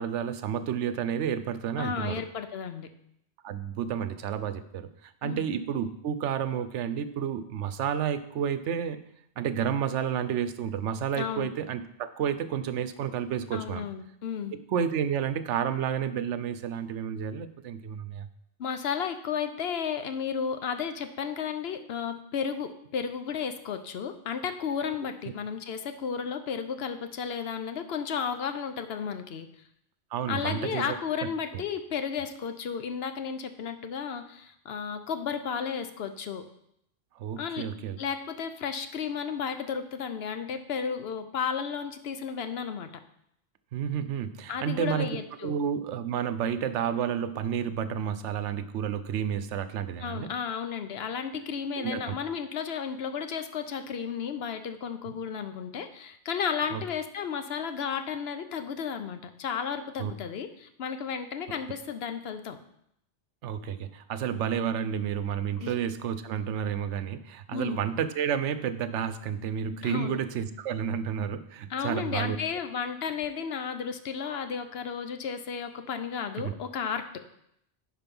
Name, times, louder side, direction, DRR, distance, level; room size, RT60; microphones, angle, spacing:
voice 1, 0.0-2.2 3.4-9.0 9.4-13.8 14.5-18.3 30.1-30.9 31.5-31.6 37.2-38.0 43.7-45.1 45.4-50.3 51.8-52.1 55.1-55.2 56.7-56.8 60.0-60.1 63.4-72.4 76.4-76.5, right 8 dB, 85° right, 12 dB, 1.0 m, -31 dB
voice 2, 1.8-2.9 5.2-5.5 11.1-11.5 13.5-14.5 18.6-29.5 30.3-36.4 37.4-37.7 38.0-42.9 44.5-45.6 50.0-62.6 65.6-65.8 67.5-67.8 69.8-70.2 71.7-77.2, left 7 dB, 65° left, 9 dB, 0.9 m, -33 dB
10.0 x 4.6 x 5.3 m, 0.76 s
omnidirectional pair, 1.2 m